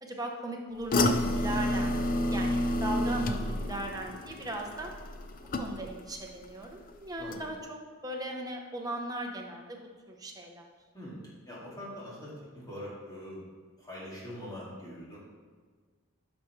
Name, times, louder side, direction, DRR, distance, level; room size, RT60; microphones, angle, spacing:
voice 1, 0.0-2.0 2.3-4.9 5.6-10.7, right 1 dB, 15° right, 1 dB, 0.9 m, -38 dB
sound 1, 0.9-6.1 6.4-6.9 7.3-7.4, left 1 dB, 40° left, 0.5 m, -29 dB
voice 2, 10.9-13.5 13.8-15.2, equal, 20° left, -7 dB, 2.3 m, -43 dB
10.5 x 6.0 x 3.3 m, 1.5 s
head